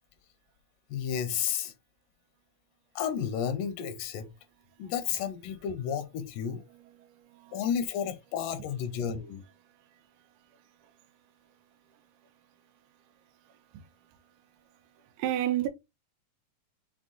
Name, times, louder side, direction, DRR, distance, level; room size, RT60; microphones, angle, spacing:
voice 1, 0.9-1.7 3.0-4.3 4.8-6.6 7.5-9.4, left 8 dB, 85° left, 2.2 m, -32 dB
voice 2, 7.0-7.6 9.7-9.9 10.5-10.9 13.5-13.8 15.2-15.7, right 12 dB, 80° right, 2.1 m, -33 dB
6.0 x 2.0 x 3.7 m
omnidirectional pair, 3.8 m